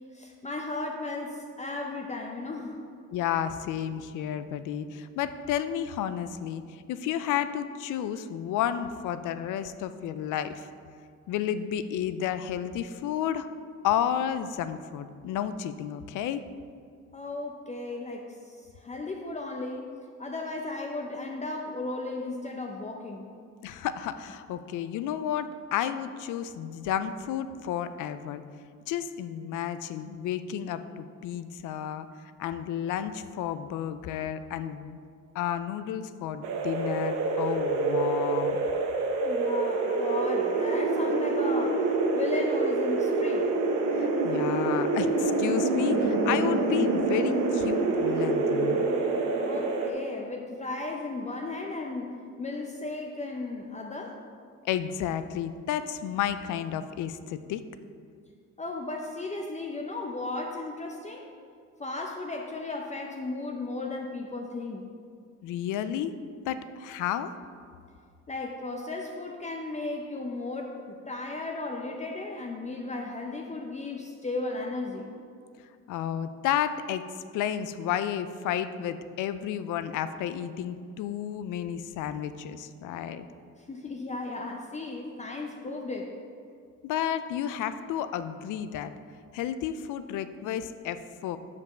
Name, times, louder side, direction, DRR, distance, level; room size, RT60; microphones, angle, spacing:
voice 1, 0.1-2.8 17.1-23.3 39.2-41.9 42.1-43.5 49.4-54.2 58.6-61.3 61.8-64.9 68.3-75.1 83.7-86.1, left 2 dB, 25° left, 1 dB, 0.6 m, -35 dB
voice 2, 3.1-10.7 11.3-13.5 13.8-16.4 23.6-28.4 28.9-32.1 32.4-35.0 35.3-38.6 43.9-48.9 54.6-57.6 65.4-66.1 66.5-67.3 75.9-77.0 77.3-83.3 86.8-88.9 89.3-91.4, left 10 dB, 85° left, 12 dB, 0.5 m, -31 dB
sound 1, 36.4-49.9, right 3 dB, 90° right, 0.9 m, -26 dB
5.3 x 5.2 x 6.5 m, 2.2 s
cardioid pair, 90°, 30 cm